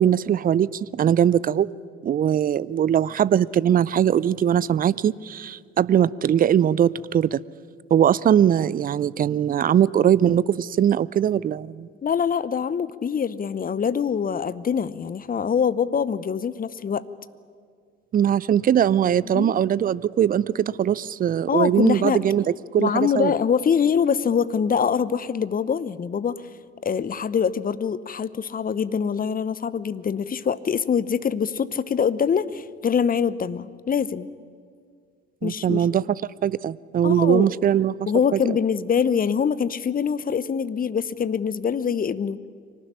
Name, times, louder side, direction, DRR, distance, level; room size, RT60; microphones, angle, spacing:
voice 1, 0.0-1.7 2.0-7.4 7.9-11.9 18.1-23.3 35.4-36.1 36.4-38.4, right 9 dB, 25° right, 21 dB, 0.5 m, -21 dB
voice 2, 12.0-17.0 19.3-19.5 21.5-22.2 22.8-26.3 26.8-34.3 35.4-35.8 37.0-37.4 38.1-42.4, left 7 dB, 25° left, 17 dB, 0.9 m, -24 dB
24.0 x 18.5 x 9.9 m, 2.1 s
figure-of-eight pair, 60°, 36 cm